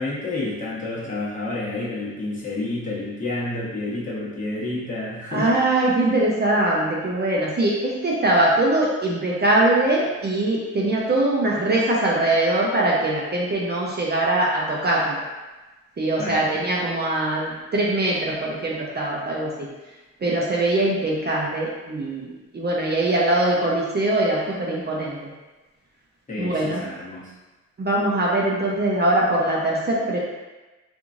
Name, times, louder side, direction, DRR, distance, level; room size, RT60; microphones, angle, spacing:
voice 1, 0.0-5.5 16.2-16.4 26.3-27.3, left 2 dB, 25° left, -7 dB, 1.1 m, -29 dB
voice 2, 5.3-15.2 16.0-19.7 20.2-22.3 22.5-25.2 26.4-26.8 27.8-30.2, right 1 dB, 35° right, -4 dB, 0.6 m, -22 dB
2.9 x 2.5 x 2.5 m, 1.2 s
cardioid pair, 60°, 30 cm